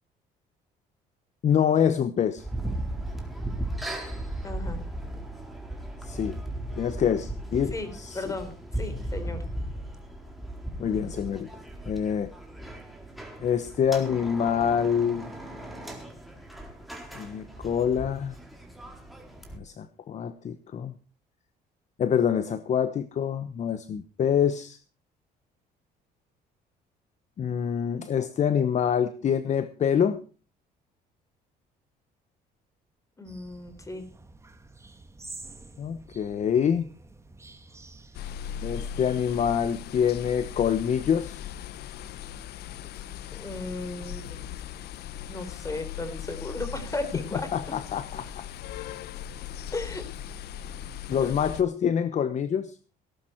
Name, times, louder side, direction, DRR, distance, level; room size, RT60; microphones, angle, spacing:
voice 1, 1.4-2.4 6.0-6.4 6.8-8.2 10.8-11.5 11.9-12.3 13.4-15.3 17.1-18.4 19.5-20.9 22.0-24.8 27.4-30.2 35.8-36.9 38.6-41.4 47.5-48.4 48.8-48.9 51.1-52.7, left 8 dB, 45° left, 12 dB, 1.0 m, -26 dB
sound 1, 2.4-19.6, right 1 dB, ahead, 4.1 m, -37 dB
voice 2, 4.4-4.8 7.7-9.4 33.2-34.1 43.3-44.4 45.3-47.5 49.7-50.0 51.2-51.3, left 2 dB, 20° left, 9 dB, 4.1 m, -35 dB
sound 2, 33.2-38.3, right 3 dB, 15° right, 1.9 m, -48 dB
sound 3, 38.1-51.6, left 9 dB, 75° left, 1.0 m, -39 dB
18.0 x 12.0 x 4.5 m, 0.36 s
cardioid pair, 110°, 17 cm